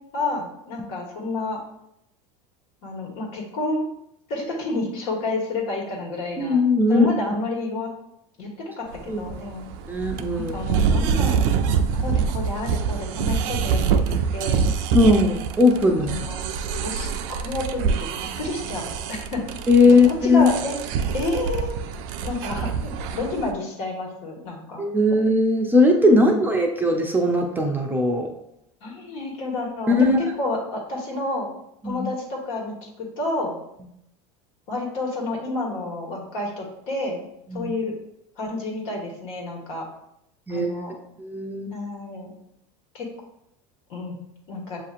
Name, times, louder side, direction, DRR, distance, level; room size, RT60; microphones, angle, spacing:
voice 1, 0.1-1.6 2.8-3.9 4.3-6.6 6.9-7.9 8.4-9.7 10.3-11.5 11.9-14.6 16.0-16.4 16.8-18.1 18.4-19.4 20.0-20.7 21.1-21.7 22.2-24.8 26.2-26.5 28.8-31.5 31.8-33.5 34.7-37.2 37.5-37.9 38.4-39.8 40.5-40.9 41.7-42.3 42.9-43.1 43.9-44.1 44.5-44.8, left 2 dB, 70° left, -1 dB, 1.6 m, -30 dB
voice 2, 6.4-7.1 9.1-9.2 9.9-10.6 14.9-16.1 19.7-20.5 24.8-28.3 29.9-30.2 31.8-32.0 37.5-37.7 40.5-40.8 41.2-41.7, left 2 dB, 10° right, 1 dB, 0.5 m, -19 dB
sound 1, 8.9-23.5, right 6 dB, 65° right, 0.4 m, -25 dB
6.9 x 2.8 x 2.5 m, 0.78 s
supercardioid pair, 110°, 17 cm